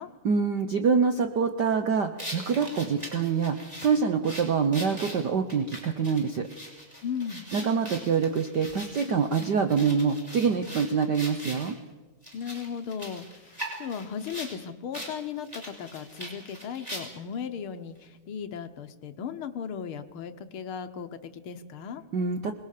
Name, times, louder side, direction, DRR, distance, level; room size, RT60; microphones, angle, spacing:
voice 1, 0.2-6.5 7.5-11.7 22.1-22.6, right 5 dB, 80° right, 7 dB, 0.9 m, -25 dB
sound 1, 2.2-11.7 12.2-14.5 14.9-15.1 15.4-17.3, equal, 10° right, 5.5 m, -41 dB
voice 2, 7.0-7.5 12.3-22.0, left 7 dB, 60° left, 9 dB, 1.5 m, -36 dB
27.0 x 20.0 x 6.7 m, 1.2 s
omnidirectional pair, 3.4 m